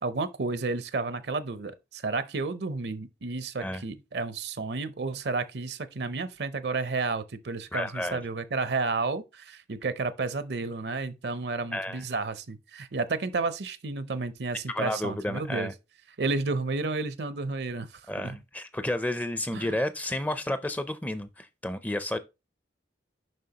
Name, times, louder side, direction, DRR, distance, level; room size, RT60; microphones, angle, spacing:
voice 1, 0.0-15.7 16.2-18.4 19.5-19.7, right 3 dB, 65° right, 0.6 m, -31 dB
voice 2, 7.7-8.2 11.7-12.0 14.7-15.7 18.1-22.2, left 1 dB, 10° left, 0.4 m, -31 dB
7.6 x 5.6 x 2.8 m
head